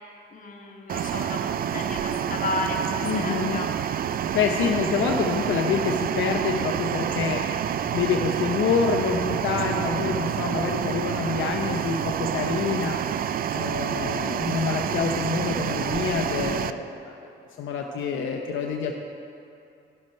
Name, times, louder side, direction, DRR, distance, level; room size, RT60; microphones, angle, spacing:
voice 1, 0.3-3.7, left 2 dB, 40° left, 1 dB, 1.4 m, -33 dB
sound 1, 0.9-16.7, right 9 dB, 50° right, 0.4 m, -28 dB
voice 2, 3.0-3.6 4.3-7.4 7.9-13.0 13.5-16.9 17.6-18.9, left 5 dB, 75° left, 1 dB, 0.8 m, -26 dB
13.0 x 6.3 x 4.2 m, 2.6 s
cardioid pair, 90°, 20 cm